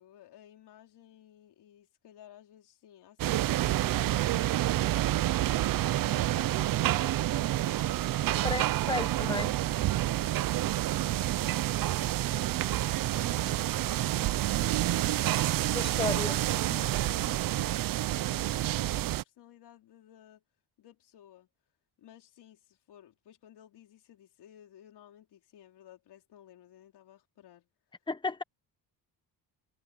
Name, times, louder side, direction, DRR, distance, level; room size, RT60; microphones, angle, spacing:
voice 1, 0.0-5.2 5.8-8.7 9.7-11.7 12.0-15.2 15.8-15.9 16.6-20.4 20.8-21.5 22.0-27.7, left 11 dB, 80° left, 4.4 m, -56 dB
sound 1, 3.2-19.2, right 14 dB, 55° right, 0.6 m, -28 dB
voice 2, 8.4-9.5 15.7-16.4 28.1-28.4, left 3 dB, 10° left, 1.0 m, -33 dB
cardioid pair, 170°, 40 cm